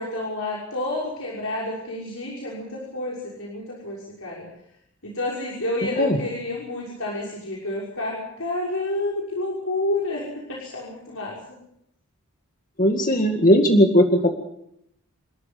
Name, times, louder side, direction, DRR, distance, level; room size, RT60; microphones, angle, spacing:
voice 1, 0.0-4.4 5.0-11.4, left 2 dB, 70° left, -3 dB, 6.1 m, -29 dB
voice 2, 12.8-14.4, equal, 35° left, 3 dB, 2.0 m, -18 dB
29.0 x 14.0 x 9.2 m, 0.77 s
head